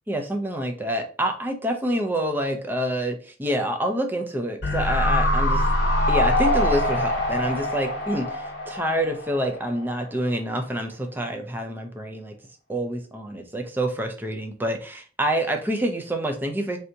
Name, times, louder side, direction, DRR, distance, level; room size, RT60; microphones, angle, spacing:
voice 1, 0.1-5.6 6.1-12.3 12.7-16.8, right 1 dB, 10° right, 4 dB, 0.4 m, -27 dB
sound 1, 4.6-9.9 10.1-10.2, left 1 dB, 65° left, 0.8 m, -24 dB
3.3 x 2.7 x 2.6 m, 0.37 s
head